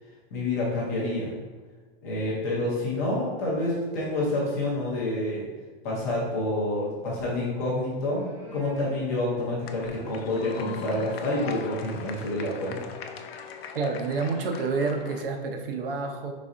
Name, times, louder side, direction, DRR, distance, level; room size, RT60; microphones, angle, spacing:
voice 1, 0.3-1.3 2.0-5.5 5.8-12.9, left 1 dB, 15° left, -6 dB, 0.5 m, -28 dB
sound 1, 7.8-13.0, equal, 25° right, 0.6 m, -46 dB
sound 2, 9.6-15.2, left 6 dB, 80° left, 0.6 m, -41 dB
voice 2, 13.7-16.3, right 4 dB, 65° right, 4 dB, 0.7 m, -28 dB
5.2 x 4.1 x 2.4 m, 1.4 s
supercardioid pair, 180°, 30 cm